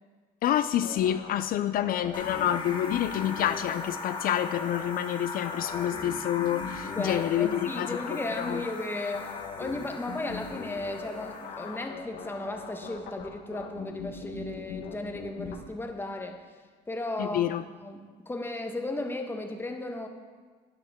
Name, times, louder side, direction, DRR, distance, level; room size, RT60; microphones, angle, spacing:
voice 1, 0.4-8.0 8.4-8.6 17.2-17.6, left 11 dB, 60° left, 11 dB, 0.4 m, -28 dB
sound 1, 0.8-15.6, left 5 dB, 80° left, 1.2 m, -41 dB
sound 2, 2.1-11.9, left 4 dB, 30° left, 1.7 m, -39 dB
voice 2, 6.9-16.4 16.9-20.1, left 2 dB, 15° left, 5 dB, 1.1 m, -35 dB
12.0 x 9.7 x 3.6 m, 1.5 s
cardioid pair, 110°, 17 cm